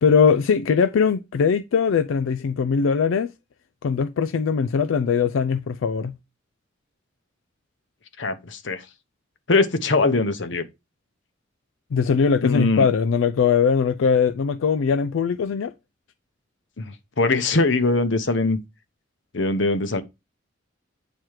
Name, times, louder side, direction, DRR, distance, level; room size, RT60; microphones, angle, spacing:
voice 1, 0.0-3.3 3.8-6.2 11.9-15.7, left 6 dB, 85° left, 0.4 m, -20 dB
voice 2, 8.2-8.8 9.5-10.6 12.4-12.9 16.8-16.9 17.2-18.6 19.3-20.0, left 3 dB, 65° left, 0.9 m, -21 dB
8.8 x 3.1 x 4.7 m
head